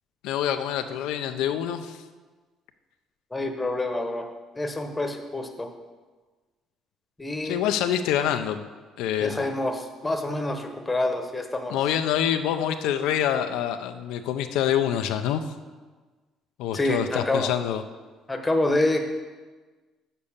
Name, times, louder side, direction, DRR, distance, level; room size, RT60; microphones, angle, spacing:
voice 1, 0.2-2.0 7.4-8.7 9.0-9.5 11.7-15.4 16.6-17.8, left 10 dB, 85° left, 8 dB, 0.5 m, -26 dB
voice 2, 3.3-4.3 4.5-5.7 7.2-7.6 9.2-11.8 16.7-17.5 18.3-19.0, left 2 dB, 15° left, 4 dB, 1.0 m, -27 dB
6.8 x 5.3 x 7.1 m, 1.3 s
cardioid pair, 110°, 0 cm